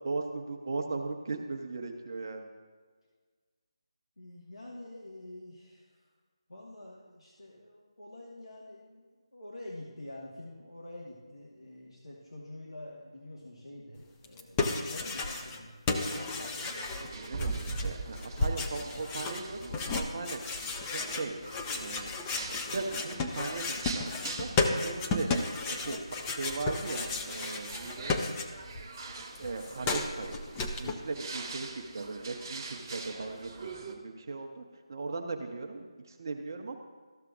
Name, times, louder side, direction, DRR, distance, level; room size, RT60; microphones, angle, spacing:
voice 1, 0.0-2.5 16.1-16.2 17.1-21.4 21.7-22.1 22.6-25.3 25.7-28.2 29.4-30.4 30.8-34.6 34.9-36.7, right 3 dB, 40° right, 3 dB, 0.6 m, -38 dB
voice 2, 4.2-6.1 6.5-16.7 35.8-35.9, left 1 dB, 75° left, -3 dB, 1.4 m, -47 dB
sound 1, 14.2-15.6 15.9-28.8 29.1-30.9, left 3 dB, 15° left, 0.5 m, -33 dB
sound 2, 15.9-34.0, right 3 dB, 20° right, 0.9 m, -43 dB
13.5 x 6.6 x 2.5 m, 1.5 s
figure-of-eight pair, 155°, 3 cm